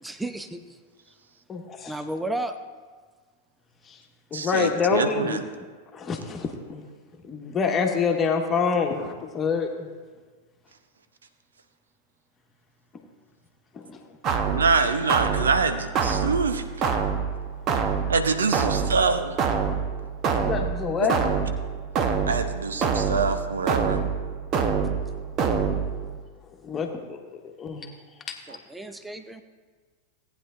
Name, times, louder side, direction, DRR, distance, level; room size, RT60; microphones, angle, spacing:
voice 1, 0.0-0.8 1.1-1.2 1.9-2.6 28.5-29.4, right 1 dB, 5° right, 9 dB, 0.7 m, -33 dB
voice 2, 1.5-2.0 3.9-4.0 4.3-5.4 5.9-6.8 7.2-9.9 13.7-14.0 20.4-21.3 26.6-27.9 28.3-28.4, left 5 dB, 20° left, 2 dB, 1.4 m, -27 dB
voice 3, 4.3-5.4 14.4-16.6 18.1-19.4 22.3-24.0 28.5-28.6, right 4 dB, 70° right, 9 dB, 0.8 m, -25 dB
sound 1, 14.2-26.2, right 6 dB, 35° right, 0.9 m, -26 dB
18.0 x 9.4 x 2.6 m, 1.5 s
figure-of-eight pair, 90°, 0 cm